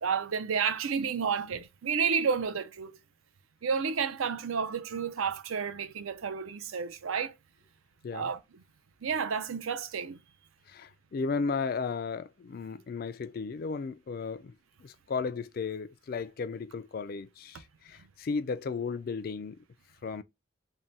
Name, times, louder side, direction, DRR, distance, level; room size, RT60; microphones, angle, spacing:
voice 1, 0.0-2.9 3.6-7.3 8.1-8.4 9.0-10.2, right 6 dB, 85° right, 0.5 m, -31 dB
voice 2, 10.7-14.5 14.8-19.6 20.0-20.2, left 4 dB, 45° left, 0.3 m, -34 dB
3.6 x 2.1 x 4.0 m
head